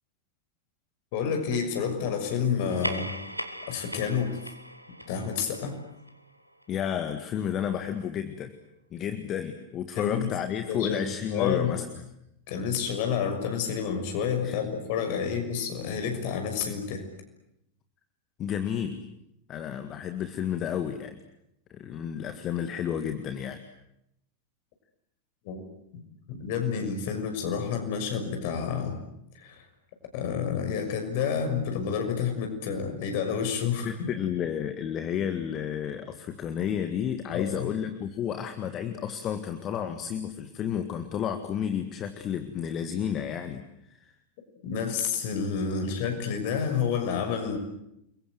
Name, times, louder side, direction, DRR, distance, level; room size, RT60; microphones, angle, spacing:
voice 1, 1.1-3.1 3.7-4.4 5.1-5.8 9.9-10.3 10.7-11.8 12.5-17.1 25.4-25.6 26.3-29.0 29.4-29.6 30.1-33.9 37.3-37.7 44.6-47.6, left 6 dB, 50° left, 5 dB, 6.3 m, -29 dB
sound 1, 2.6-7.4, equal, 90° right, 1.7 m, -39 dB
voice 2, 6.7-8.5 8.9-11.9 14.4-14.6 18.4-19.1 19.5-21.2 21.7-23.6 33.8-43.6 43.9-44.1 45.8-45.9, left 9 dB, 30° left, 8 dB, 1.9 m, -31 dB
29.5 x 22.5 x 8.0 m, 0.80 s
figure-of-eight pair, 90°, 0 cm